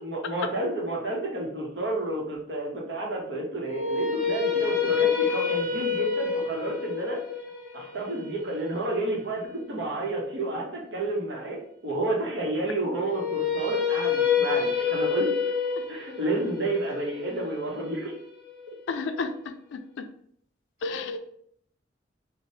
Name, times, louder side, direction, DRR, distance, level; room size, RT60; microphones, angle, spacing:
voice 1, 0.0-7.2 7.7-15.3 15.9-18.2, right 2 dB, 65° right, -2 dB, 0.8 m, -30 dB
sound 1, 3.7-9.8 13.0-19.1, left 6 dB, 55° left, 0.7 m, -28 dB
voice 2, 18.9-19.3 19.7-19.8 20.8-21.2, left 4 dB, 85° left, 8 dB, 0.3 m, -30 dB
2.7 x 2.1 x 3.1 m, 0.67 s
head